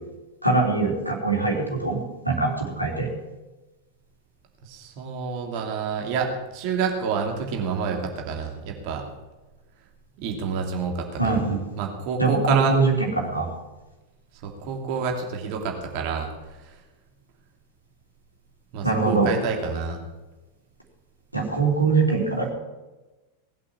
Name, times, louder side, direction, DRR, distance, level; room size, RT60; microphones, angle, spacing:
voice 1, 0.4-2.0 2.2-3.1 11.2-11.6 12.2-13.5 18.8-19.3 21.3-22.5, right 3 dB, 90° right, -1 dB, 3.3 m, -22 dB
voice 2, 4.6-9.1 10.2-11.4 11.8-12.8 14.4-16.8 18.7-20.0, right 5 dB, 45° right, 2 dB, 2.9 m, -28 dB
19.0 x 8.5 x 7.4 m, 1.1 s
figure-of-eight pair, 90°, 0 cm